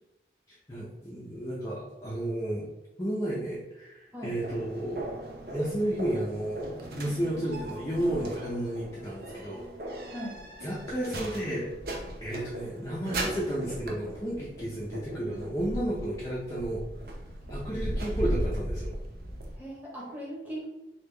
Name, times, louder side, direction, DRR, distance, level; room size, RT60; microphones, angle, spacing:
voice 1, 0.7-2.7 3.0-5.1 5.5-6.6 7.0-9.6 10.6-11.7 12.2-16.8 17.5-18.9, right 1 dB, 20° left, -6 dB, 0.5 m, -32 dB
sound 1, 4.3-19.6, right 1 dB, 55° right, 0.6 m, -37 dB
voice 2, 19.6-20.7, equal, 10° right, -5 dB, 0.9 m, -38 dB
3.4 x 2.3 x 3.3 m, 0.96 s
head